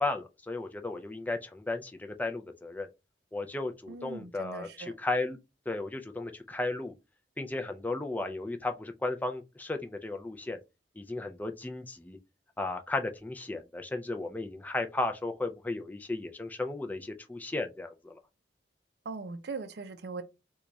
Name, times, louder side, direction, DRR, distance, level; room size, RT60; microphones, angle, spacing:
voice 1, 0.0-2.9 3.3-5.4 5.7-6.9 7.4-10.6 11.0-12.2 12.6-18.2, left 2 dB, 10° left, 0.4 m, -34 dB
voice 2, 3.9-4.9 19.1-20.2, right 4 dB, 65° right, 0.5 m, -40 dB
3.8 x 2.3 x 3.0 m
head